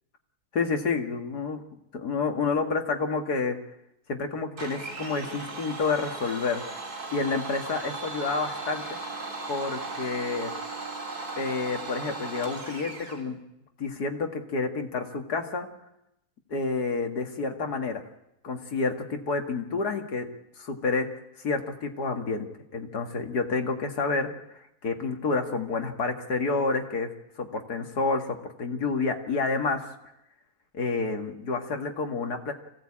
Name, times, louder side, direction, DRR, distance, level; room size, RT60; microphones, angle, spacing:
voice 1, 0.5-1.6 1.9-3.6 4.1-6.6 7.1-9.0 9.5-10.5 11.4-13.4 13.8-15.7 16.5-18.0 18.4-20.3 20.6-21.1 21.4-22.5 22.7-24.3 24.8-27.1 27.4-29.8 30.7-32.5, left 4 dB, 90° left, 4 dB, 2.5 m, -29 dB
Domestic sounds home sounds, 4.6-13.2, right 3 dB, 75° right, 3.6 m, -37 dB
25.0 x 16.5 x 8.7 m, 0.86 s
omnidirectional pair, 1.6 m